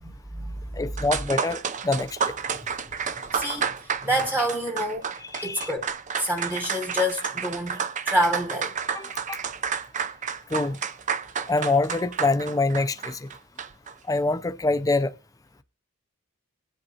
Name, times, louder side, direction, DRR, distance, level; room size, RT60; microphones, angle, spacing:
voice 1, 0.0-0.8 3.3-3.7 4.0-5.1 5.4-5.9 6.2-8.8, equal, 10° right, 1.0 m, -27 dB
voice 2, 0.7-2.4 5.2-5.7 8.9-9.4 10.5-10.8 11.5-13.3 14.1-15.1, left 3 dB, 15° left, 0.4 m, -25 dB
sound 1, 0.7-0.8 1.0-13.9, right 6 dB, 35° right, 0.5 m, -31 dB
22.5 x 7.8 x 2.8 m
head